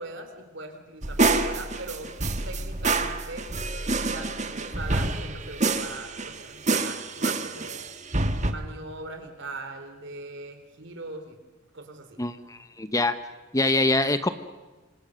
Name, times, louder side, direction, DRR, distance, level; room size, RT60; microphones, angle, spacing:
voice 1, 0.0-2.1 2.5-3.5 4.0-7.9 8.5-11.4 11.7-12.2, right 2 dB, 60° right, 6 dB, 3.8 m, -40 dB
sound 1, 1.0-6.4 6.7-8.5, right 3 dB, 35° right, 1.6 m, -27 dB
voice 2, 12.2-13.1 13.5-14.3, left 2 dB, 15° left, 10 dB, 1.0 m, -24 dB
28.0 x 25.5 x 6.6 m, 1.2 s
head